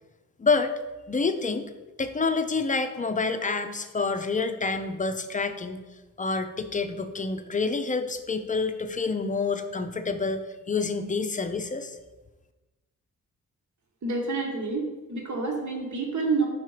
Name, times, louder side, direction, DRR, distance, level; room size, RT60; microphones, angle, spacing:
voice 1, 0.4-0.7 1.1-1.7 2.0-5.8 6.2-12.0, left 4 dB, 25° left, 8 dB, 0.5 m, -28 dB
voice 2, 14.0-16.5, right 3 dB, 60° right, 1 dB, 1.3 m, -28 dB
5.9 x 4.4 x 4.8 m, 1.2 s
cardioid pair, 100°, 33 cm